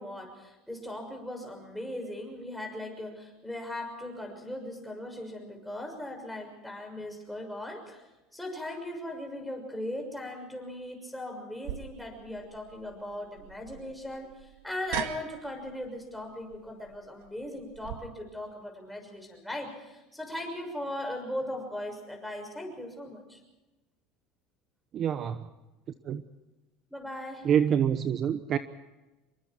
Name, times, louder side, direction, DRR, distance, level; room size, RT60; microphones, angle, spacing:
voice 1, 0.0-8.1 8.3-23.4 26.9-27.5, left 1 dB, ahead, 6.5 m, -38 dB
sound 1, 11.6-18.0, right 12 dB, 85° right, 1.9 m, -42 dB
voice 2, 24.9-25.4 26.1-26.2 27.4-28.6, right 8 dB, 40° right, 1.1 m, -26 dB
27.5 x 23.0 x 4.5 m
cardioid pair, 140°, 0 cm